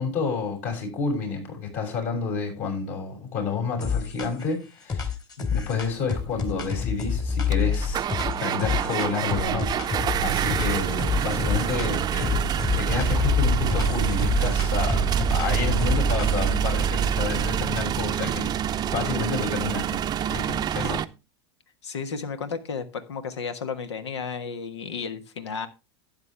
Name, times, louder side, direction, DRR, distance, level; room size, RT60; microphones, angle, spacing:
voice 1, 0.0-5.1 5.5-8.1 8.4-9.9 10.2-18.5 18.9-20.0 20.3-21.0, left 4 dB, 55° left, 6.8 m, -30 dB
sound 1, 3.8-4.5 4.9-10.2 10.5-11.9 12.2-16.6, left 7 dB, 25° left, 2.3 m, -28 dB
sound 2, 6.8-6.9 7.5-21.1, right 9 dB, 30° right, 0.6 m, -26 dB
voice 2, 21.8-25.7, left 5 dB, 80° left, 1.4 m, -33 dB
12.0 x 8.8 x 3.4 m
hypercardioid pair, 95°, 14 cm